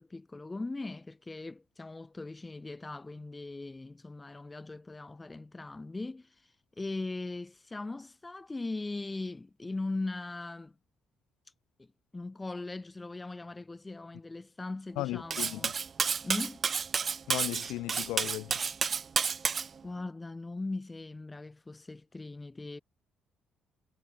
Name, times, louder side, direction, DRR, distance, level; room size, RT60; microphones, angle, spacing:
voice 1, 0.0-10.8 11.8-15.7 16.2-16.7 19.8-22.8, left 2 dB, 20° left, 7.0 m, -39 dB
voice 2, 15.0-15.7 17.3-18.6, left 18 dB, 80° left, 0.6 m, -36 dB
Cutlery silverware, 15.3-19.7, right 6 dB, 45° right, 1.0 m, -30 dB
supercardioid pair, 65°, 0 cm